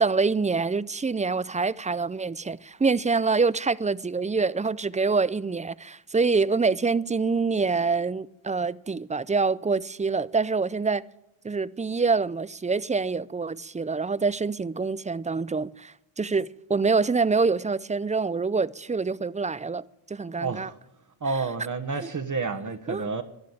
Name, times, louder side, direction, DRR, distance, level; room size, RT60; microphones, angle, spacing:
voice 1, 0.0-11.0 11.4-20.7 22.9-23.1, right 4 dB, 15° right, 0.5 m, -26 dB
voice 2, 20.4-20.8 21.2-23.2, right 4 dB, 35° right, 1.3 m, -30 dB
12.5 x 11.5 x 8.4 m
cardioid pair, 65°, 50 cm